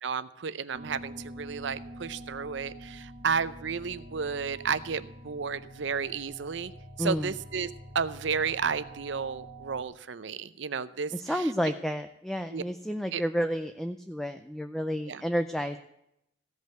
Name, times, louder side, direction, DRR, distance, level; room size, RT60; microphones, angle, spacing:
voice 1, 0.0-6.7 7.0-11.5 12.5-12.6 13.1-13.2 15.1-15.2, right 6 dB, 70° right, 14 dB, 0.6 m, -32 dB
sound 1, 0.7-9.8, right 1 dB, 40° right, 1.4 m, -46 dB
voice 2, 7.0-7.3 11.2-15.8, equal, ahead, 8 dB, 0.4 m, -30 dB
16.0 x 5.4 x 7.7 m, 0.80 s
head